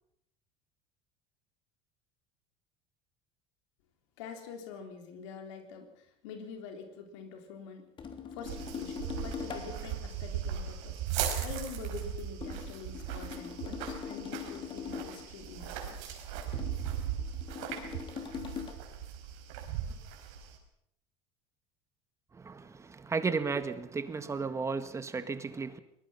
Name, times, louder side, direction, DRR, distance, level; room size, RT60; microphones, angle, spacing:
voice 1, 4.2-7.9 8.3-16.2, left 5 dB, 85° left, 3.8 m, -46 dB
sound 1, 8.0-10.0 12.4-15.3 16.5-18.7, left 6 dB, 35° left, 3.2 m, -41 dB
sound 2, 8.4-20.6, right 9 dB, 85° right, 4.7 m, -38 dB
voice 2, 22.3-25.8, right 4 dB, 20° right, 1.7 m, -34 dB
23.0 x 19.5 x 5.8 m
supercardioid pair, 120°, 15 cm